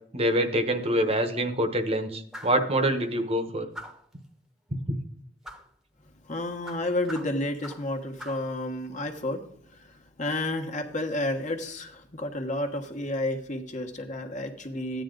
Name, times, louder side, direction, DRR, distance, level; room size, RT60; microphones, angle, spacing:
voice 1, 0.1-3.7 4.7-5.0, right 1 dB, 35° right, 8 dB, 1.1 m, -25 dB
sound 1, 2.3-2.7 3.7-4.1 5.4-5.7 6.6-7.9 8.2-8.5, equal, ahead, 1.1 m, -42 dB
voice 2, 6.2-15.0, left 1 dB, 40° left, 4 dB, 1.4 m, -31 dB
13.5 x 9.4 x 3.9 m, 0.66 s
head